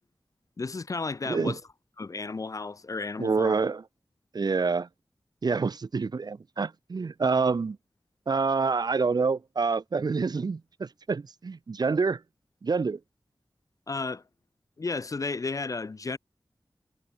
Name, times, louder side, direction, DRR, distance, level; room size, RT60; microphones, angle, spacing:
voice 1, 0.6-1.6 2.0-3.5 13.9-14.2 14.8-16.2, left 3 dB, 45° left, 0.5 m, -33 dB
voice 2, 1.3-1.6 3.2-3.8 4.3-4.9 5.4-7.8 8.3-12.2 12.6-13.0, right 4 dB, 55° right, 0.5 m, -27 dB
wide cardioid pair, 80°, 8 cm